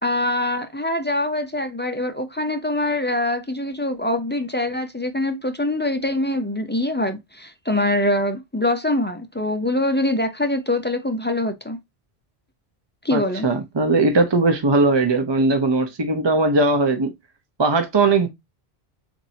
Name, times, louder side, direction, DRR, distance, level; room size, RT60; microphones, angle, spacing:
voice 1, 0.0-11.8 13.0-13.5, left 1 dB, 15° left, 0.5 m, -24 dB
voice 2, 13.1-17.1 17.6-18.3, right 3 dB, 30° right, 0.6 m, -19 dB
7.2 x 2.6 x 2.7 m
omnidirectional pair, 1.1 m